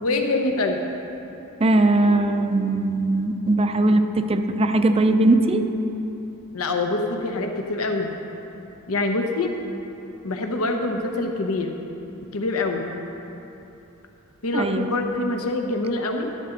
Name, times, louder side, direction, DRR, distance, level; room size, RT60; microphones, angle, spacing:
voice 1, 0.0-0.8 6.5-8.1 8.9-9.5 10.2-11.7 12.3-12.9 14.4-16.3, left 2 dB, 75° left, 3 dB, 0.9 m, -25 dB
voice 2, 1.6-5.6 14.5-14.9, right 2 dB, 25° right, 8 dB, 0.5 m, -20 dB
12.0 x 11.5 x 3.9 m, 3.0 s
head